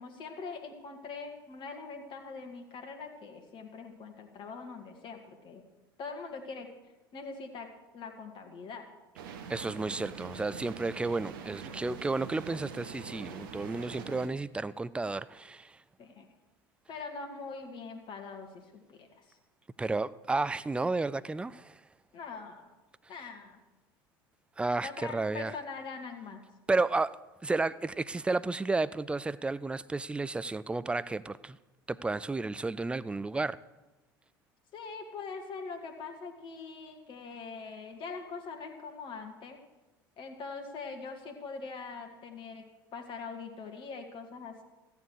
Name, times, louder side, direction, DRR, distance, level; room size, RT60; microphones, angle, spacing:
voice 1, 0.0-5.6 6.0-7.7 7.9-8.9 16.0-16.3 16.9-19.4 22.1-22.7 23.1-23.6 24.8-26.4 34.7-39.6 40.2-42.7 42.9-44.6, left 4 dB, 45° left, 4 dB, 1.8 m, -43 dB
sound 1, 9.2-14.3, right 7 dB, 65° right, 1.0 m, -44 dB
voice 2, 9.5-15.8 19.8-21.7 24.6-25.5 26.7-27.2 27.4-31.6 31.9-33.6, right 3 dB, 10° right, 16 dB, 0.4 m, -32 dB
14.0 x 9.6 x 4.8 m, 1.1 s
figure-of-eight pair, 70°, 12 cm